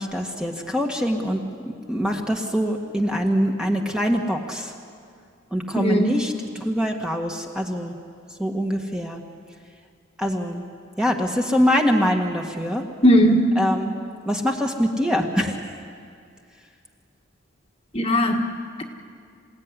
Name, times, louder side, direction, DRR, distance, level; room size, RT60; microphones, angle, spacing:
voice 1, 0.0-4.7 5.5-8.0 8.4-9.2 10.2-10.6 11.0-12.8 13.6-14.0 14.3-15.6, equal, 5° right, 1 dB, 1.7 m, -24 dB
voice 2, 5.7-6.1 13.0-13.5 17.9-18.5, equal, 30° left, 2 dB, 1.7 m, -17 dB
28.0 x 17.5 x 9.8 m, 2.3 s
head